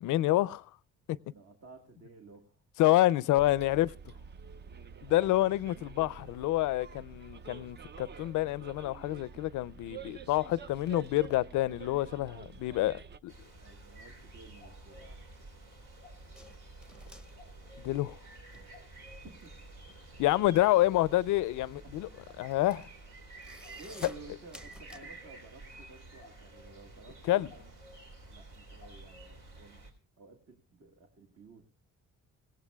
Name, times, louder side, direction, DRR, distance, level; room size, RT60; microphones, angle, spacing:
voice 1, 0.0-0.6 1.1-1.2 2.8-3.9 5.0-12.9 13.2-13.3 17.8-18.2 20.2-22.1 22.4-22.9 27.3-27.5, left 16 dB, 80° left, 0.5 m, -28 dB
voice 2, 1.3-2.6 5.0-5.4 12.6-13.0 13.5-15.2 18.5-18.8 19.2-19.6 21.8-22.0 23.7-27.7 28.3-29.8 30.2-31.6, right 4 dB, 50° right, 1.7 m, -54 dB
Bus, 3.4-13.2, right 6 dB, 35° right, 0.5 m, -48 dB
sound 1, 13.3-29.9, right 2 dB, 80° right, 3.5 m, -51 dB
sound 2, 16.4-18.6 18.9-25.0, left 1 dB, 5° right, 0.8 m, -53 dB
18.0 x 17.0 x 2.3 m
cardioid pair, 90°, 30 cm